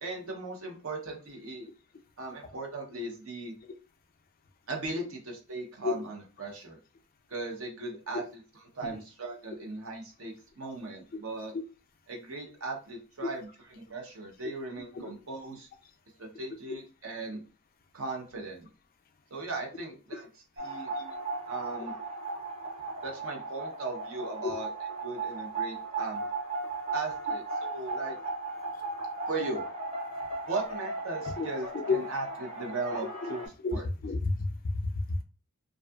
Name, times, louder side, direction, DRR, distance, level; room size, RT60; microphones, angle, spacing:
voice 1, 0.0-1.7 2.2-3.5 4.7-6.8 7.3-8.2 8.7-11.5 12.1-13.5 13.7-15.7 16.2-17.4 17.9-18.7 19.3-20.3 20.6-20.9 21.5-21.9 23.0-24.7 25.0-26.2 26.9-28.2 29.3-29.6 30.5-33.9, right 3 dB, 65° right, 1 dB, 0.7 m, -37 dB
sound 1, 20.6-33.5, right 3 dB, 30° right, 0.7 m, -36 dB
voice 2, 33.6-35.2, left 3 dB, 40° left, 5 dB, 0.3 m, -31 dB
2.6 x 2.4 x 2.2 m, 0.34 s
head